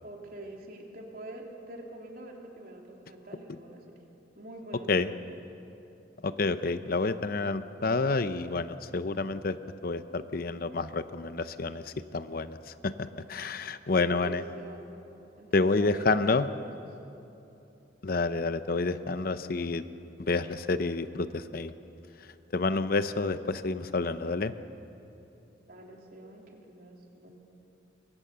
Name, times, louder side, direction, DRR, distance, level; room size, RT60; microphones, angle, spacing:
voice 1, 0.0-4.0 4.3-5.2 13.9-14.9 15.4-16.7 25.7-27.4, right 1 dB, 55° right, 0 dB, 3.4 m, -45 dB
voice 2, 6.2-9.6 9.8-14.4 15.5-16.5 18.0-19.9 20.2-21.7 22.5-24.5, left 3 dB, 50° left, 11 dB, 0.7 m, -29 dB
25.0 x 23.0 x 6.8 m, 2.8 s
head